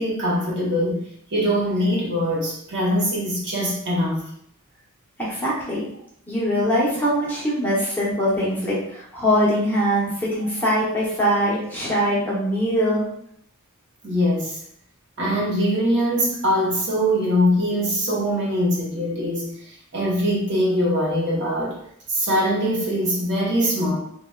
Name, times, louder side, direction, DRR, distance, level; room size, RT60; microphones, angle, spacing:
voice 1, 0.0-4.2 10.4-10.5 14.0-14.6 15.2-19.5 19.9-21.8 22.1-24.0, equal, 55° right, -4 dB, 0.8 m, -22 dB
voice 2, 5.2-5.9 6.3-13.0, equal, 10° left, -7 dB, 0.8 m, -22 dB
3.2 x 2.2 x 2.2 m, 0.68 s
head